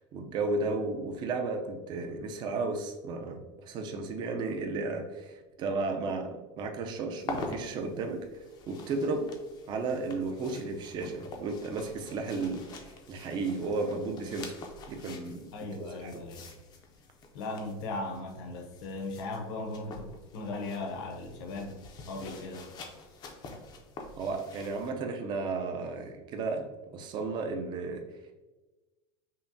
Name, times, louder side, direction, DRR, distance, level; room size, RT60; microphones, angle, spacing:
voice 1, 0.0-9.4 9.7-14.6 14.9-15.7 16.0-16.2 24.2-26.7 26.9-28.0, right 3 dB, 30° right, 4 dB, 0.4 m, -34 dB
sound 1, 7.2-24.9, left 3 dB, 30° left, 0.5 m, -46 dB
voice 2, 15.5-16.5 17.3-21.8 22.0-22.7, left 2 dB, 65° left, 3 dB, 0.8 m, -38 dB
5.5 x 2.1 x 2.6 m, 1.2 s
supercardioid pair, 160°, 15 cm